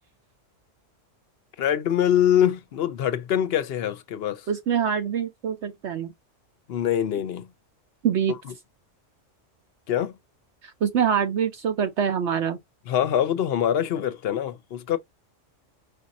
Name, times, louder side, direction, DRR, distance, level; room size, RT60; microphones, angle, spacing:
voice 1, 1.6-4.5 6.7-7.5 8.3-8.5 9.9-10.1 12.9-15.0, left 10 dB, 60° left, 0.8 m, -24 dB
voice 2, 4.5-6.1 8.0-8.3 10.8-12.6, right 8 dB, 65° right, 0.9 m, -24 dB
5.2 x 2.5 x 4.1 m
omnidirectional pair, 1.3 m